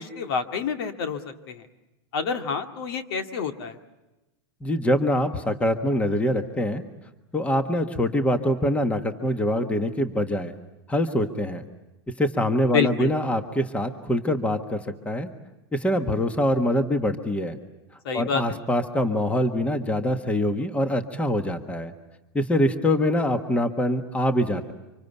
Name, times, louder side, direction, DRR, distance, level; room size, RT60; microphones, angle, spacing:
voice 1, 0.0-1.7 2.1-3.8 12.7-13.1 18.0-18.6, left 6 dB, 70° left, 6 dB, 2.2 m, -28 dB
voice 2, 4.6-6.8 7.3-10.5 10.9-11.6 12.2-15.3 15.7-17.6 18.1-21.9 22.3-24.7, left 1 dB, 10° left, 8 dB, 1.5 m, -24 dB
26.0 x 24.5 x 8.2 m, 1.0 s
supercardioid pair, 135°, 13 cm